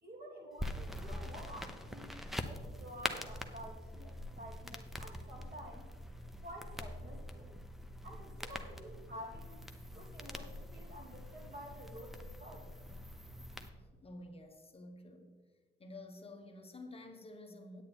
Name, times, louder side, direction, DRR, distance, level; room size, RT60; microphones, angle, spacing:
voice 1, 0.0-5.9 6.4-7.6 8.0-9.5 9.9-12.7, equal, 50° right, -2 dB, 3.2 m, -50 dB
sound 1, 0.6-13.7, equal, ahead, 0.8 m, -44 dB
voice 2, 13.7-15.4 15.8-17.8, left 2 dB, 30° left, 3 dB, 1.1 m, -51 dB
8.9 x 8.5 x 4.4 m, 1.4 s
cardioid pair, 90°, 20 cm